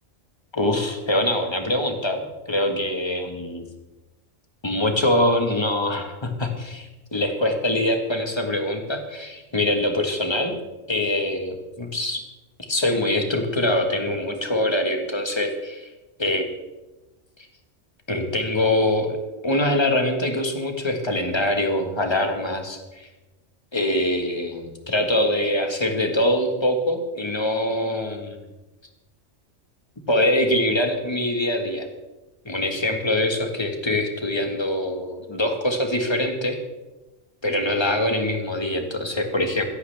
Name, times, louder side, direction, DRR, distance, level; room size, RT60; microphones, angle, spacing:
voice 1, 0.5-3.7 4.6-10.6 10.9-12.2 12.6-15.9 16.2-16.5 18.1-19.2 19.4-23.1 23.7-28.4 30.1-31.9 32.4-36.6 37.4-39.6, left 1 dB, 20° left, 4 dB, 1.6 m, -24 dB
15.5 x 15.0 x 3.5 m, 1.1 s
omnidirectional pair, 1.3 m